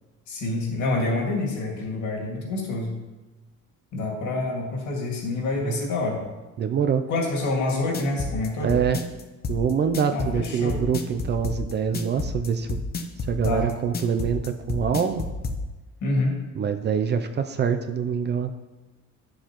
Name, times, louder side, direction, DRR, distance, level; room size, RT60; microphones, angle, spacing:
voice 1, 0.3-2.9 3.9-6.2 7.1-8.7 10.1-10.8 13.4-13.7 16.0-16.4, left 2 dB, 65° left, 0 dB, 2.2 m, -27 dB
voice 2, 6.6-7.0 8.6-9.0 9.5-12.8 13.3-15.2 16.6-18.6, right 7 dB, 35° right, 8 dB, 0.4 m, -25 dB
sound 1, 7.7-15.6, left 4 dB, 30° left, 0.7 m, -30 dB
10.5 x 7.3 x 3.0 m, 1.2 s
cardioid pair, 155°, 32 cm